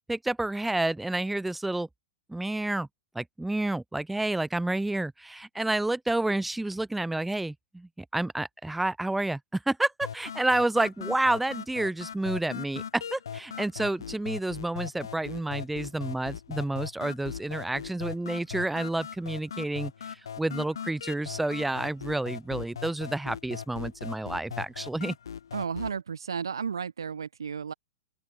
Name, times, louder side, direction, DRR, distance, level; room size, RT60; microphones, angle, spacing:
voice 1, 0.1-1.9 2.3-2.9 3.1-25.2, right 2 dB, 5° right, 0.3 m, -29 dB
sound 1, 10.0-26.0, left 7 dB, 70° left, 0.5 m, -39 dB
voice 2, 25.5-27.7, right 6 dB, 70° right, 0.7 m, -33 dB
open air
figure-of-eight pair, 100°, 2 cm